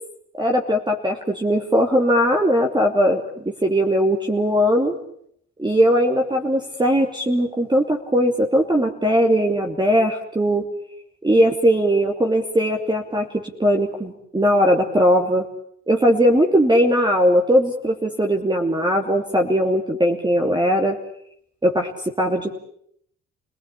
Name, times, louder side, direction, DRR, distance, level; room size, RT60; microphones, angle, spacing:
voice 1, 0.4-5.0 5.6-10.6 11.2-15.5 15.9-21.0 21.6-22.6, equal, 15° right, 2 dB, 2.9 m, -19 dB
29.5 x 19.0 x 8.5 m, 0.69 s
cardioid pair, 90°, 30 cm